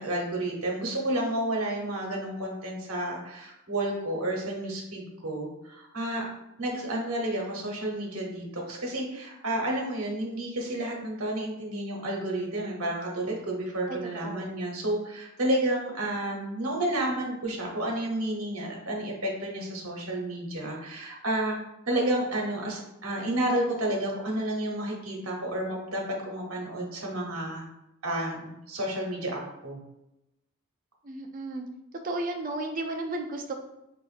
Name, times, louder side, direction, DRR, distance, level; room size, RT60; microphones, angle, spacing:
voice 1, 0.0-6.2 6.6-21.6 21.9-27.7 28.0-28.4 28.7-29.8, right 1 dB, 70° right, -1 dB, 0.9 m, -31 dB
voice 2, 13.9-14.5 31.0-31.6 32.0-33.5, right 2 dB, 40° right, 3 dB, 0.4 m, -33 dB
5.0 x 2.4 x 2.4 m, 0.89 s
head